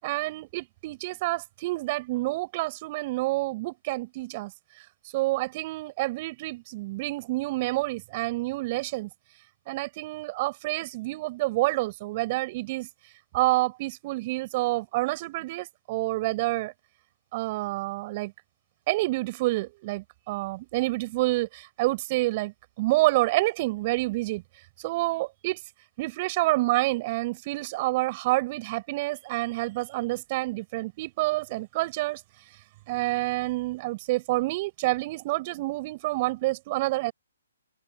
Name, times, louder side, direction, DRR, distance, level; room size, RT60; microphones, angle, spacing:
voice 1, 0.0-4.5 5.1-9.1 9.7-12.9 13.3-16.7 17.3-18.3 18.9-24.4 24.8-25.6 26.0-32.2 32.9-37.1, right 20 dB, 35° right, 7.4 m, -28 dB
open air
figure-of-eight pair, 140°, 0 cm